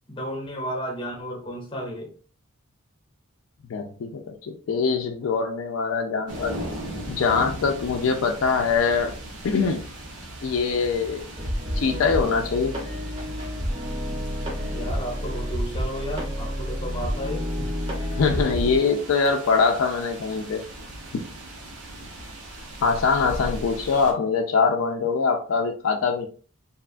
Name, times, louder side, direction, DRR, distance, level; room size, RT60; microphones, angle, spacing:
voice 1, 0.1-2.1 14.7-17.7, equal, 25° left, 1 dB, 0.7 m, -33 dB
voice 2, 3.7-6.5 7.1-9.1 9.4-9.9 10.4-11.3 11.7-12.8 18.2-20.7 22.8-26.3, left 5 dB, 70° left, 3 dB, 0.4 m, -23 dB
sound 1, 6.3-24.1, right 1 dB, 90° right, 0.8 m, -39 dB
sound 2, 11.4-18.8, equal, 25° right, 0.6 m, -29 dB
2.8 x 2.3 x 2.4 m, 0.39 s
head